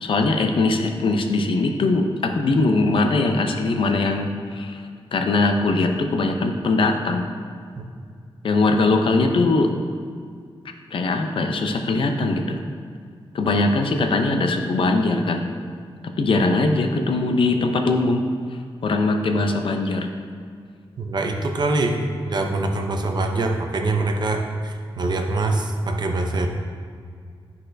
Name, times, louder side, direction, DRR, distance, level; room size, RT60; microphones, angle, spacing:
voice 1, 0.0-4.8 5.1-7.3 8.4-9.7 10.9-12.6 13.3-15.5 16.2-18.3 18.8-20.1, left 3 dB, 60° left, 5 dB, 0.6 m, -21 dB
voice 2, 21.0-26.5, right 2 dB, 45° right, 3 dB, 0.6 m, -24 dB
9.9 x 4.1 x 2.6 m, 2.2 s
wide cardioid pair, 120°, 10 cm